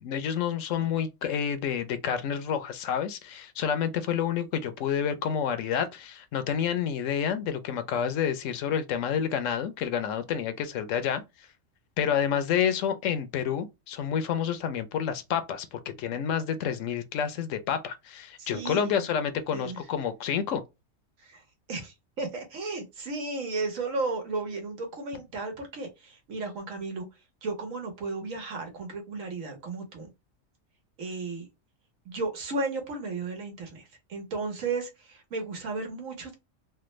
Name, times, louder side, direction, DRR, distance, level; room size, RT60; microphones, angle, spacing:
voice 1, 0.0-11.2 12.0-20.6, left 8 dB, 75° left, 0.9 m, -29 dB
voice 2, 18.4-18.9 19.5-19.8 21.2-21.4 21.7-27.1 27.4-30.1 31.0-31.5 32.0-36.3, right 3 dB, 90° right, 1.4 m, -34 dB
3.4 x 2.2 x 3.0 m
omnidirectional pair, 1.3 m